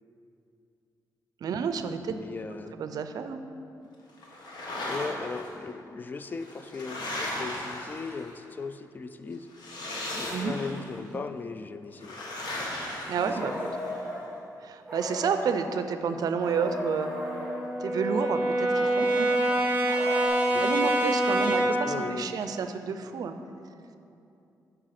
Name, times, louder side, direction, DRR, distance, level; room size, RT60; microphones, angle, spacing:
voice 1, 1.4-2.1 2.7-3.4 10.3-10.5 13.1-13.7 14.6-17.1 17.8-19.3 20.6-23.3, right 6 dB, 65° right, 9 dB, 0.5 m, -30 dB
voice 2, 2.1-2.8 4.9-9.5 10.1-12.2 13.2-13.7 20.5-20.6 21.4-22.3, left 4 dB, 25° left, 10 dB, 0.3 m, -38 dB
sound 1, 4.2-5.5 6.3-8.4 9.5-10.9 12.0-13.9, left 1 dB, 75° left, 1.4 m, -36 dB
sound 2, 13.3-14.2 14.8-15.7 16.4-17.6 18.7-20.3, equal, ahead, 1.9 m, -36 dB
Brass instrument, 16.4-21.9, right 1 dB, 20° right, 1.0 m, -26 dB
9.7 x 4.8 x 5.8 m, 2.7 s
wide cardioid pair, 160°, 7 cm